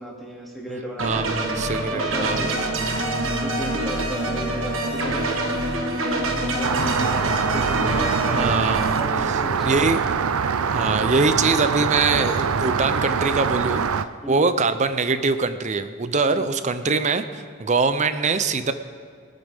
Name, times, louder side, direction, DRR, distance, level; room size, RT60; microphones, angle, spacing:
voice 1, 0.0-1.4 1.8-2.8 3.2-8.2 8.9-9.9 14.2-14.5 16.3-16.5, equal, ahead, -5 dB, 2.6 m, -35 dB
voice 2, 1.0-2.4 8.3-9.0 9.3-9.4 9.7-10.0 10.7-18.7, right 4 dB, 35° right, 10 dB, 0.6 m, -23 dB
sound 1, 1.0-9.0, right 1 dB, 60° right, 1.4 m, -25 dB
Rain, 6.6-14.0, right 6 dB, 75° right, 0.5 m, -24 dB
23.0 x 9.2 x 3.6 m, 2.2 s
head